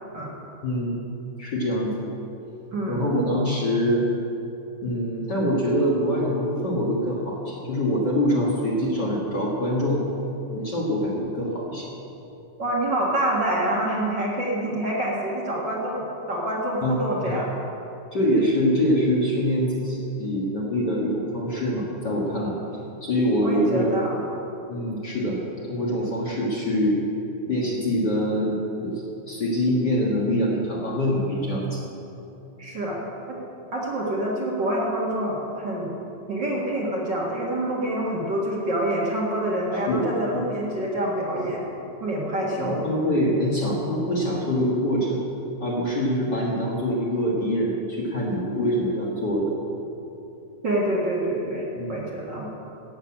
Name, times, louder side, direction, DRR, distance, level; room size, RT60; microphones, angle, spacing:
voice 1, 1.4-1.9 2.9-4.0 4.8-10.0 10.5-11.9 16.8-17.3 18.1-22.6 23.0-24.0 24.7-25.4 25.7-27.0 27.4-31.8 39.9-40.1 40.3-40.4 42.6-45.2 45.6-49.6 51.8-52.0, equal, 40° left, -4 dB, 1.9 m, -24 dB
voice 2, 12.6-17.5 23.4-24.2 32.6-33.0 33.3-33.4 33.7-36.0 36.3-41.7 42.0-42.8 50.6-52.5, right 1 dB, 45° right, -4 dB, 2.0 m, -26 dB
12.0 x 8.0 x 8.6 m, 2.9 s
omnidirectional pair, 3.4 m